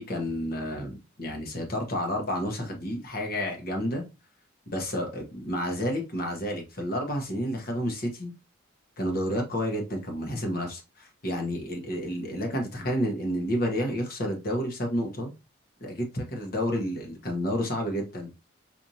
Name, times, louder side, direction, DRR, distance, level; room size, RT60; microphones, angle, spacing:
voice 1, 0.0-4.0 4.7-8.3 9.0-15.3 15.8-18.3, equal, 45° left, 2 dB, 0.9 m, -30 dB
4.4 x 2.5 x 2.7 m, 0.27 s
head